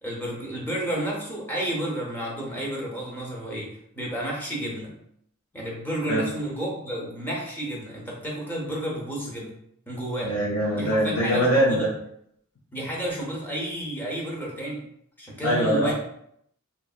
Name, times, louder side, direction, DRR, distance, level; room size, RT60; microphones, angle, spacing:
voice 1, 0.0-4.9 5.5-9.5 9.9-10.3 10.7-11.9 12.7-14.8 15.2-15.9, right 1 dB, 10° left, -3 dB, 0.7 m, -31 dB
voice 2, 10.2-11.9 15.4-15.9, equal, 85° left, -4 dB, 0.6 m, -22 dB
2.9 x 2.6 x 2.4 m, 0.71 s
head